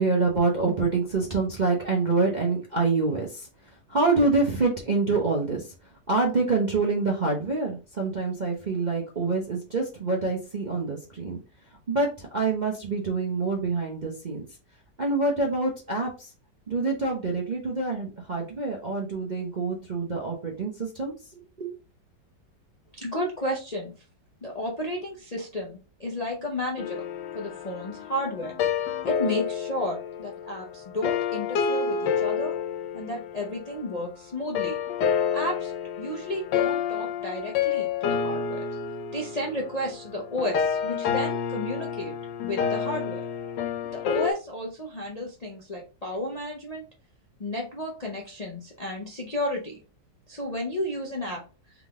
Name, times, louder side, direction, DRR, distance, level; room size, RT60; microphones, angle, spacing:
voice 1, 0.0-3.4 3.9-5.6 6.1-11.4 11.9-14.4 15.0-16.3 16.7-21.7, right 3 dB, 40° right, -2 dB, 0.6 m, -26 dB
voice 2, 23.0-23.9 24.4-27.0 27.3-28.6 29.0-32.5 32.9-34.8 35.3-35.7 36.0-38.7 39.1-42.2 42.4-43.2 43.9-46.8 47.4-49.8 50.3-51.4, left 1 dB, 40° left, -1 dB, 0.6 m, -32 dB
sound 1, 26.8-34.0 34.5-44.3, left 7 dB, 85° left, 1.3 m, -29 dB
3.7 x 3.6 x 3.5 m, 0.33 s
omnidirectional pair, 1.8 m